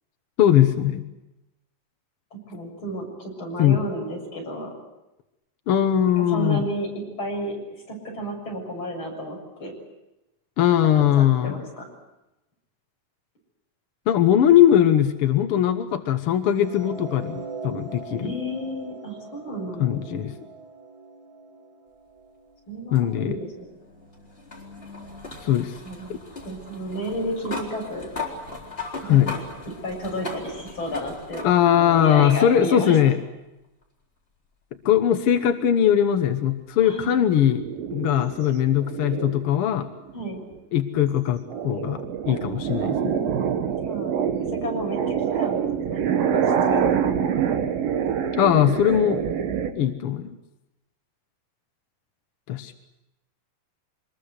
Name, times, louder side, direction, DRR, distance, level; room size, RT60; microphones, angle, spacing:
voice 1, 0.4-1.0 3.6-3.8 5.7-6.6 10.6-11.6 14.1-18.4 19.8-20.3 22.9-23.4 25.4-25.8 29.1-29.3 31.4-33.2 34.8-37.6 37.9-39.9 40.7-42.0 42.3-43.2 48.4-49.2 49.8-50.3 52.5-52.8, left 10 dB, 65° left, 7 dB, 1.4 m, -20 dB
voice 2, 2.3-4.7 6.1-7.6 7.9-9.7 11.2-11.9 18.2-20.2 22.7-23.7 25.8-28.1 29.1-33.0 36.8-37.1 40.1-40.4 43.8-44.2 44.5-47.3 48.5-48.7 49.0-49.1, equal, 35° left, 0 dB, 7.7 m, -32 dB
sound 1, 16.6-22.8, right 4 dB, 55° right, 5.5 m, -41 dB
sound 2, 22.9-31.8 32.3-32.5 33.8-33.9 36.8-36.9, left 3 dB, 15° left, 4.2 m, -38 dB
sound 3, 37.6-39.6 40.1-40.5 40.9-49.7, right 8 dB, 80° right, 3.2 m, -26 dB
25.5 x 21.0 x 8.1 m, 0.97 s
omnidirectional pair, 4.0 m